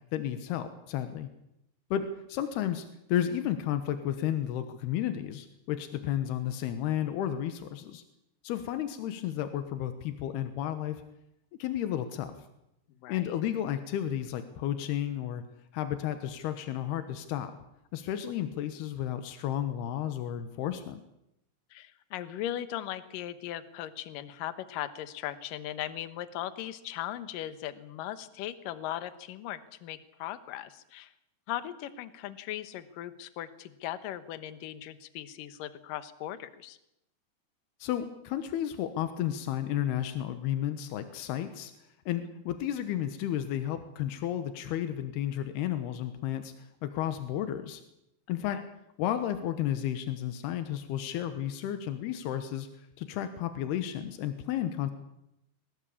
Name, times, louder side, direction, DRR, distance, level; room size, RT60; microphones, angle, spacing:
voice 1, 0.1-1.3 1.9-8.0 8.4-11.0 11.6-12.3 13.1-15.4 15.7-17.5 17.9-21.0 37.8-41.7 42.1-47.8 48.3-48.6 49.0-52.7 53.0-54.9, left 11 dB, 85° left, 9 dB, 3.3 m, -32 dB
voice 2, 13.0-13.3 21.7-31.1 31.5-36.8 48.5-48.6, left 12 dB, 70° left, 13 dB, 2.6 m, -38 dB
23.5 x 18.0 x 8.6 m, 0.84 s
omnidirectional pair, 4.5 m